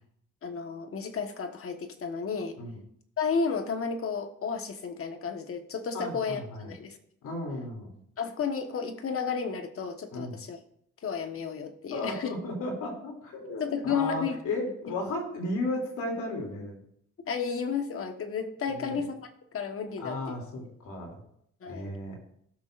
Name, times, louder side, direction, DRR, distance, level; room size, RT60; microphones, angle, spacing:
voice 1, 0.4-2.6 3.2-7.0 8.2-10.6 11.0-12.4 13.6-14.4 17.2-19.1 19.5-20.4 21.6-21.9, left 5 dB, 45° left, 6 dB, 1.3 m, -32 dB
voice 2, 5.9-6.7 7.2-8.0 10.1-10.4 11.9-16.8 18.7-19.0 20.0-21.2 21.7-22.2, left 2 dB, 80° left, 0 dB, 2.9 m, -34 dB
17.5 x 6.3 x 2.5 m, 0.70 s
cardioid pair, 90°, 30 cm